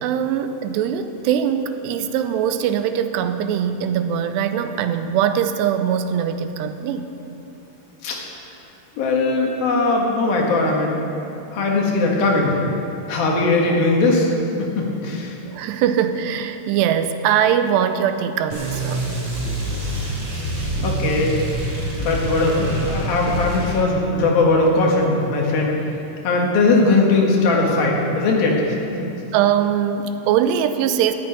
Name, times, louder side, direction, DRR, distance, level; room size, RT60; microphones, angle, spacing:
voice 1, 0.0-7.1 15.4-19.0 29.3-31.1, right 9 dB, 85° right, 9 dB, 2.8 m, -21 dB
voice 2, 9.0-11.0 11.5-12.6 13.1-14.3 14.6-15.3 20.8-21.4 22.0-25.8 26.2-28.8, left 3 dB, 65° left, -1 dB, 3.3 m, -19 dB
sound 1, 18.5-23.8, right 1 dB, 30° right, 3.5 m, -26 dB
13.0 x 8.8 x 9.3 m, 2.9 s
omnidirectional pair, 4.8 m